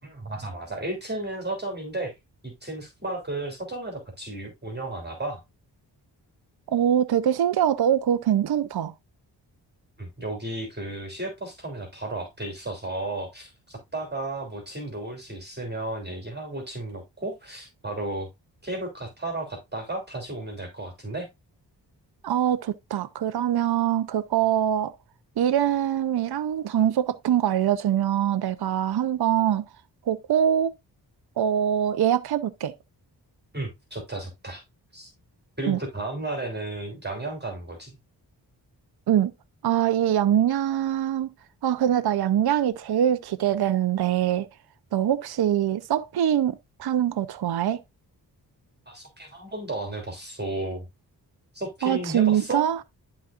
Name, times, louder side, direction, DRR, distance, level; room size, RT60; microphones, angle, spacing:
voice 1, 0.0-2.1 2.4-5.4 10.0-18.3 18.6-21.3 33.5-34.6 34.9-35.1 35.6-38.0 48.9-50.9 51.5-52.6, right 2 dB, 25° right, 3.1 m, -33 dB
voice 2, 6.7-8.9 22.2-24.9 25.4-29.7 30.1-30.7 31.4-32.7 35.7-35.8 39.1-39.3 39.6-41.3 41.6-44.5 44.9-47.8 51.8-52.8, right 10 dB, 60° right, 0.7 m, -23 dB
11.5 x 4.1 x 2.5 m
cardioid pair, 45°, 43 cm